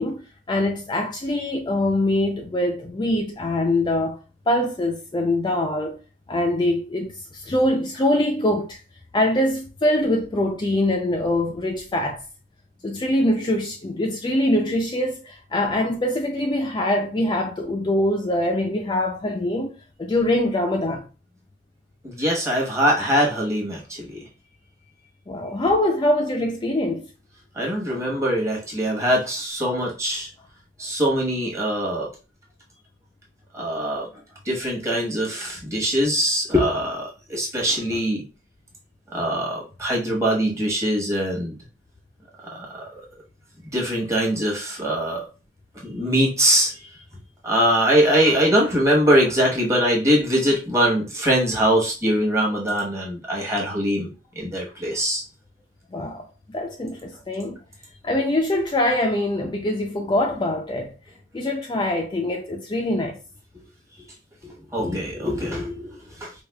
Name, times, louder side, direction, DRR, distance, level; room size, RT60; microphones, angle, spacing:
voice 1, 0.0-4.2 4.5-6.0 6.3-8.8 9.1-12.2 12.8-21.1 25.3-27.1 55.9-56.3 56.5-57.6 58.0-60.9 61.3-63.2, left 1 dB, 25° left, 0.4 m, -23 dB
voice 2, 22.0-24.2 27.6-30.3 30.8-32.1 33.5-34.0 34.5-38.2 39.1-41.5 42.5-43.0 43.7-45.2 45.8-46.7 47.4-54.1 54.4-55.2 64.4-66.4, equal, 15° right, 1.1 m, -22 dB
4.7 x 2.4 x 2.2 m
head